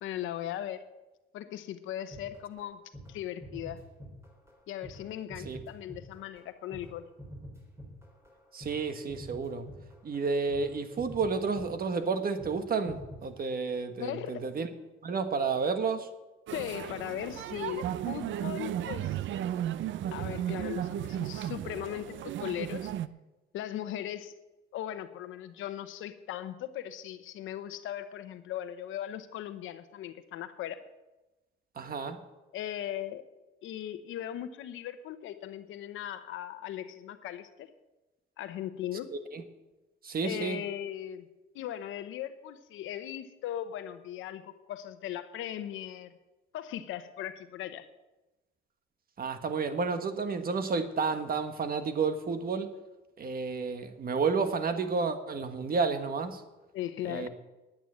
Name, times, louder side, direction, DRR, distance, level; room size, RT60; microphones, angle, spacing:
voice 1, 0.0-0.8 1.3-2.8 3.1-3.8 4.7-7.0 14.0-14.4 16.5-19.2 20.1-22.9 23.5-24.3 24.7-30.8 32.5-33.2 33.6-37.7 38.4-39.1 40.2-41.3 41.5-46.1 46.5-47.9 56.7-57.3, left 11 dB, 90° left, 11 dB, 0.9 m, -38 dB
sound 1, 2.1-2.7 2.9-3.1 3.4-4.6 4.8-12.6 12.8-13.3, equal, 15° right, 4.0 m, -47 dB
voice 2, 8.5-9.7 10.0-14.7 15.0-16.1 31.8-32.2 39.1-39.4 40.0-40.6 49.2-52.7 53.2-56.4 57.0-57.3, right 4 dB, 50° right, 8 dB, 1.4 m, -31 dB
sound 2, 16.5-23.1, right 11 dB, 70° right, 0.5 m, -35 dB
10.0 x 9.2 x 7.6 m, 1.1 s
cardioid pair, 90°, 20 cm